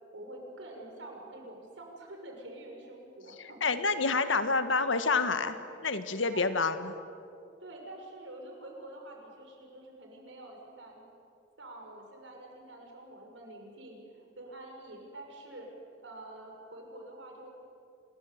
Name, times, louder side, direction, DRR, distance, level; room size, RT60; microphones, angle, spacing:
voice 1, 0.1-3.6 3.9-4.2 6.3-6.5 7.6-11.1 11.6-15.7 16.0-17.5, right 1 dB, 75° right, 1 dB, 6.3 m, -47 dB
voice 2, 3.6-5.6 5.8-6.9, left 4 dB, 85° left, 10 dB, 1.7 m, -28 dB
27.5 x 21.5 x 9.6 m, 2.6 s
head